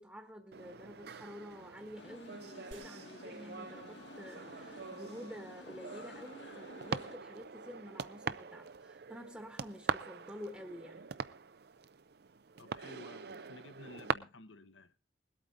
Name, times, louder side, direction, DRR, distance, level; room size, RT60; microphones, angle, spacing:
voice 1, 0.0-11.1, equal, 10° right, 1.2 m, -49 dB
sound 1, 0.5-14.1, right 5 dB, 55° right, 0.6 m, -43 dB
sound 2, 2.0-7.2, left 2 dB, 60° left, 1.6 m, -53 dB
sound 3, 2.7-5.0, right 2 dB, 80° right, 1.6 m, -60 dB
voice 2, 12.6-15.0, left 2 dB, 75° left, 1.2 m, -53 dB
21.0 x 8.7 x 3.8 m
head